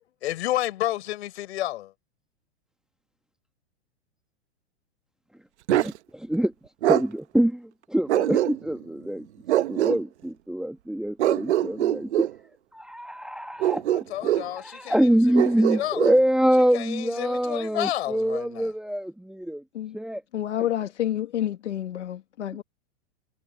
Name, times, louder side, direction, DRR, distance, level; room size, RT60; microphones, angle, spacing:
voice 1, 0.2-1.9 14.1-15.0 15.8-16.1 16.7-18.7, left 14 dB, 65° left, 5.1 m, -30 dB
voice 2, 5.7-6.5 6.8-9.3 9.7-12.3 12.7-13.8 14.5-19.6 19.9-20.2 20.6-20.7, right 1 dB, ahead, 1.6 m, -25 dB
Bark, 5.7-6.0 6.8-7.1 8.1-8.8 9.5-10.0 11.2-12.3 13.6-14.5 15.3-16.2, right 13 dB, 70° right, 1.2 m, -23 dB
voice 3, 20.3-22.6, left 11 dB, 85° left, 2.2 m, -29 dB
hypercardioid pair, 135°, 35 cm